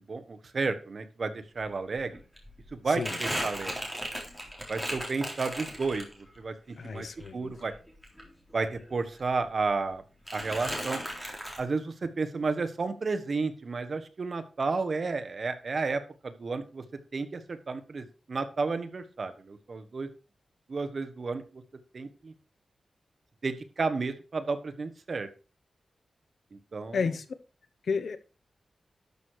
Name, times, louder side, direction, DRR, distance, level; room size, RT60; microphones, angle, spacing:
voice 1, 0.1-2.1 2.7-3.8 4.7-6.1 6.4-7.1 7.3-7.7 8.5-10.0 10.3-11.0 11.6-16.8 17.1-20.1 20.7-21.6 21.9-22.3 23.4-25.3 26.5-27.0, right 4 dB, 45° right, 1.3 m, -32 dB
Crumpling crinkling, 2.0-6.4 6.8-8.9 9.2-9.9 10.3-11.6, equal, ahead, 3.6 m, -37 dB
voice 2, 2.9-3.2 6.8-7.5 26.9-27.2 27.9-28.2, left 5 dB, 70° left, 1.0 m, -31 dB
12.0 x 6.4 x 4.8 m
wide cardioid pair, 135°, 0 cm